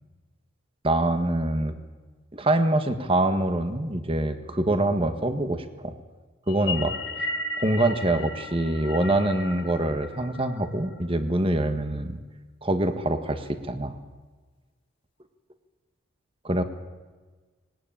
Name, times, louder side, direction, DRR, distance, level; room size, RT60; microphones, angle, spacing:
voice 1, 0.8-1.7 2.3-5.9 6.5-7.3 7.6-12.2 12.6-13.9 16.4-16.6, right 1 dB, 25° right, 9 dB, 1.5 m, -25 dB
sound 1, 6.5-11.0, left 2 dB, 55° left, 2.0 m, -35 dB
19.5 x 19.0 x 8.9 m, 1.3 s
head